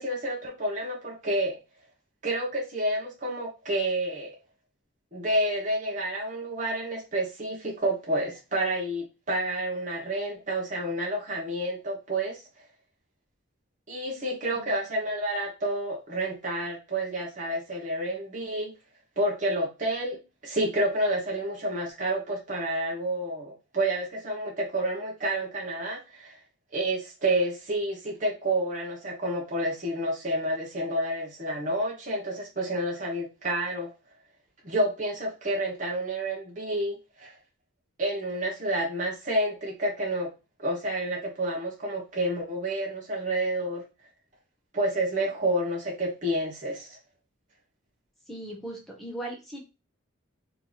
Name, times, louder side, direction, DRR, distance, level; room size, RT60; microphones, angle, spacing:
voice 1, 0.0-1.6 2.2-4.3 5.1-12.4 13.9-18.7 19.2-26.4 26.7-33.9 34.6-37.3 38.0-40.3 40.6-43.8 44.7-47.0, right 1 dB, 40° right, -2 dB, 1.0 m, -29 dB
voice 2, 48.3-49.6, right 1 dB, ahead, -2 dB, 1.1 m, -38 dB
3.3 x 2.9 x 4.0 m, 0.27 s
head